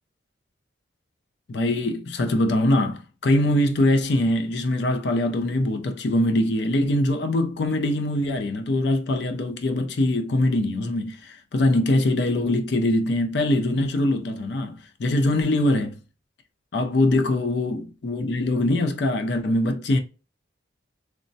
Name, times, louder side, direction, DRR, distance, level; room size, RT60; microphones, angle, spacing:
voice 1, 1.5-16.0 16.7-20.0, left 1 dB, 60° left, 0.4 m, -23 dB
3.1 x 2.1 x 2.6 m
head